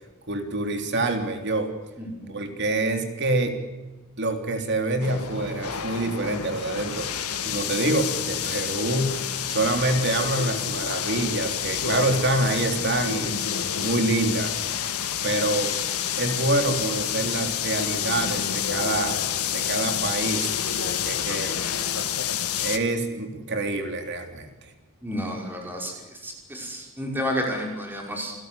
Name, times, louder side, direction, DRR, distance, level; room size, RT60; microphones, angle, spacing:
voice 1, 0.3-1.7 2.3-3.6 4.2-13.4 13.8-14.6 15.2-15.7 16.2-19.2 19.5-20.5 20.8-21.6 22.6-24.7, right 2 dB, 50° right, 6 dB, 3.4 m, -26 dB
voice 2, 2.0-2.4 25.0-25.9 26.2-28.3, equal, 10° right, 0 dB, 5.6 m, -31 dB
sound 1, 5.0-22.8, left 9 dB, 90° left, 2.0 m, -28 dB
28.5 x 16.5 x 8.4 m, 1.1 s
head